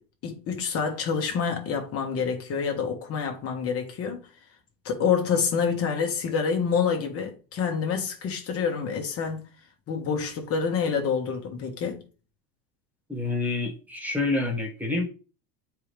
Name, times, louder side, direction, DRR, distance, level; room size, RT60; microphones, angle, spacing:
voice 1, 0.2-4.3 4.8-9.5 9.9-12.0, left 6 dB, 40° left, 1.4 m, -27 dB
voice 2, 13.1-15.1, left 3 dB, 5° right, 1.7 m, -27 dB
7.6 x 4.7 x 3.4 m
cardioid pair, 150°, 37 cm